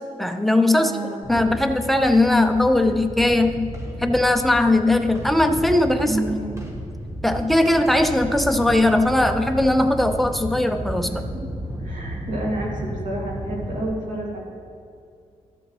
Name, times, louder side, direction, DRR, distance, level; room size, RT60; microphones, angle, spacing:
voice 1, 0.2-0.9 1.3-3.7 4.0-6.2 7.2-11.2, left 1 dB, ahead, 6 dB, 0.6 m, -19 dB
voice 2, 0.8-1.2 6.1-6.5 11.0-11.2 11.8-14.5, right 1 dB, 80° right, -3 dB, 2.4 m, -29 dB
sound 1, 1.2-13.8, equal, 25° right, 1.5 m, -33 dB
13.5 x 7.8 x 3.2 m, 2.4 s
cardioid pair, 100°, 13 cm